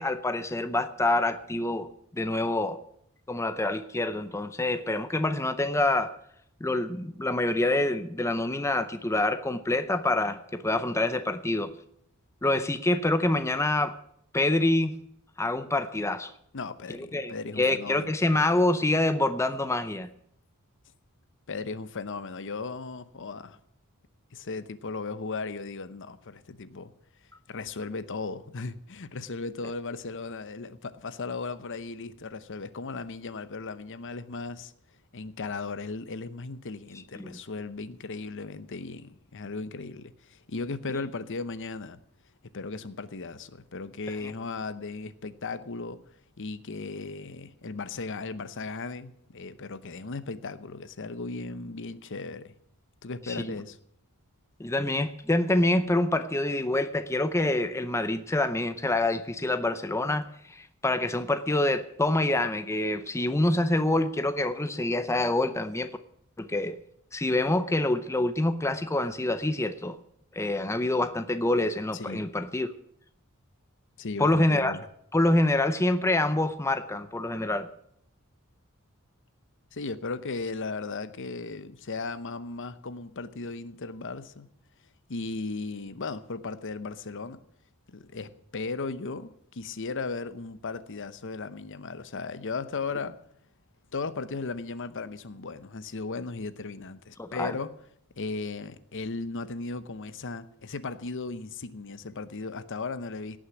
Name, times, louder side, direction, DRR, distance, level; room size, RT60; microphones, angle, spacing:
voice 1, 0.0-1.9 2.1-2.8 3.3-6.1 6.6-11.7 12.4-14.0 14.3-15.0 15.4-16.3 16.9-20.1 37.2-37.4 44.2-44.3 53.3-53.4 54.6-65.9 66.4-66.8 67.1-70.0 70.3-72.7 74.2-74.8 75.1-77.7 97.2-97.5, left 2 dB, 15° left, 0.6 m, -26 dB
voice 2, 16.5-18.1 21.5-23.6 24.3-26.9 27.5-34.7 35.1-42.0 42.5-46.0 46.4-52.5 53.0-53.8 71.9-72.3 74.0-74.8 79.7-84.5 85.1-87.4 87.9-93.2 93.9-97.7 98.2-103.4, left 3 dB, 60° left, 0.8 m, -36 dB
17.5 x 6.4 x 8.2 m
head